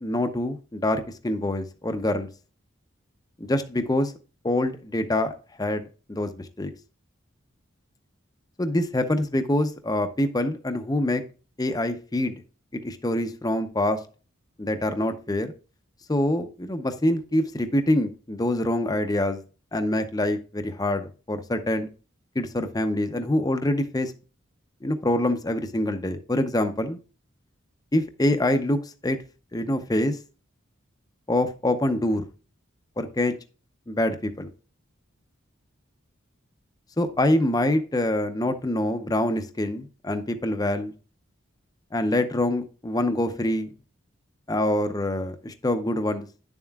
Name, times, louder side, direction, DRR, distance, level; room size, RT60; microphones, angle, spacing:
voice 1, 0.0-2.3 3.4-4.1 4.4-5.3 5.6-6.7 8.6-11.2 11.6-12.3 12.7-14.0 14.6-15.5 16.1-19.4 19.7-21.9 22.4-24.1 24.8-27.0 27.9-29.2 29.5-30.2 31.3-32.3 33.0-33.4 33.9-34.5 37.0-40.9 41.9-43.7 44.5-46.3, left 1 dB, 20° left, 0.6 m, -25 dB
9.8 x 7.2 x 2.3 m
head